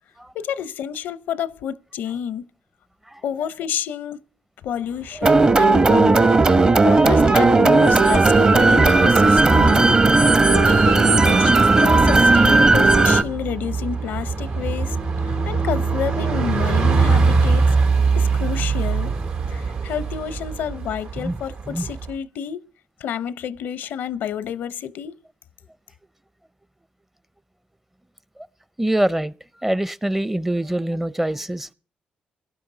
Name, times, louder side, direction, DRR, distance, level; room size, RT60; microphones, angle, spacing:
voice 1, 0.3-2.4 3.2-4.2 4.6-6.4 6.8-9.9 10.5-15.0 15.2-17.7 18.2-19.1 19.5-22.7 23.0-25.2, left 8 dB, 85° left, 0.6 m, -29 dB
Bus, 5.1-22.1, right 4 dB, 80° right, 2.5 m, -24 dB
sound 1, 5.2-13.2, right 3 dB, 35° right, 0.9 m, -15 dB
voice 2, 28.8-29.3 29.6-31.7, right 1 dB, 10° right, 0.6 m, -25 dB
17.5 x 11.5 x 3.9 m
cardioid pair, 75°, 3 cm